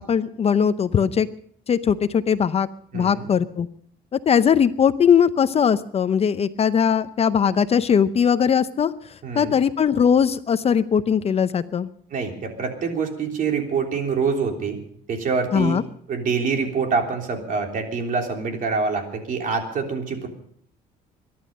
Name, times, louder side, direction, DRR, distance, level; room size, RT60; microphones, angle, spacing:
voice 1, 0.1-1.3 1.7-2.7 2.9-3.7 4.1-8.9 9.3-11.9 15.5-15.8, left 7 dB, 35° left, 13 dB, 0.7 m, -20 dB
voice 2, 2.9-3.3 9.2-9.6 12.1-14.8 15.1-15.8 16.1-20.3, right 5 dB, 50° right, 3 dB, 3.5 m, -25 dB
23.0 x 11.5 x 5.3 m, 0.62 s
cardioid pair, 110°, 17 cm